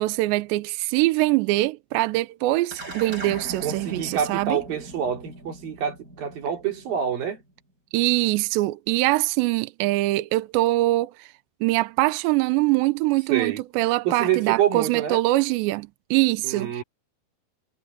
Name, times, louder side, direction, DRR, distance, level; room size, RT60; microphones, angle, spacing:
voice 1, 0.0-4.6 7.9-11.3 11.6-16.8, right 19 dB, 80° right, 2.7 m, -23 dB
sound 1, 2.7-7.3, right 1 dB, 15° right, 6.5 m, -40 dB
voice 2, 3.6-7.4 13.3-13.6 14.1-15.2 16.4-16.8, right 9 dB, 50° right, 4.4 m, -26 dB
omnidirectional pair, 5.7 m